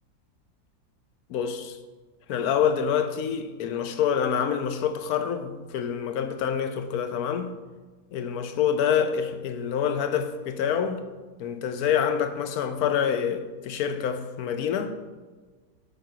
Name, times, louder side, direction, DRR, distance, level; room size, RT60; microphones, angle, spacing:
voice 1, 1.3-1.8 2.3-7.5 8.1-11.0 11.4-14.9, left 8 dB, 70° left, 1.1 m, -26 dB
6.9 x 4.5 x 6.2 m
omnidirectional pair, 1.7 m